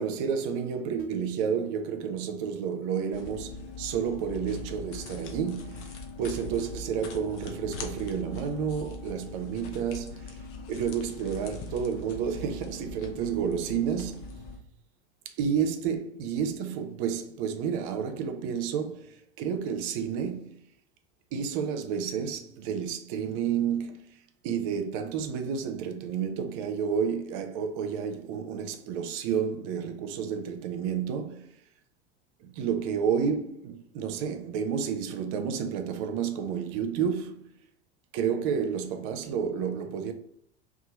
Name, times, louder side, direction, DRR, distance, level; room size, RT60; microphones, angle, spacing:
voice 1, 0.0-10.4 10.7-14.4 15.4-20.6 21.3-24.0 24.4-31.5 32.4-37.5 38.1-40.1, right 7 dB, 50° right, 0.5 m, -30 dB
sound 1, 3.1-14.6, left 3 dB, 40° left, 0.5 m, -41 dB
2.7 x 2.3 x 2.8 m
figure-of-eight pair, 80°, 34 cm